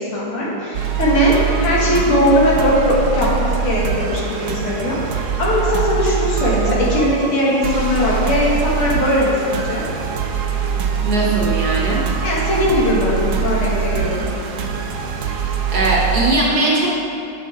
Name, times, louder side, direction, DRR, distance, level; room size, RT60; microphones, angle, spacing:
voice 1, 0.0-9.8 12.2-14.2, left 1 dB, 80° left, -6 dB, 2.3 m, -19 dB
sound 1, 0.7-16.3, right 6 dB, 90° right, 0.8 m, -23 dB
voice 2, 11.0-12.0 15.2-15.3 15.7-16.9, right 2 dB, 60° right, -4 dB, 1.1 m, -19 dB
7.6 x 5.4 x 3.7 m, 2.8 s
omnidirectional pair, 2.3 m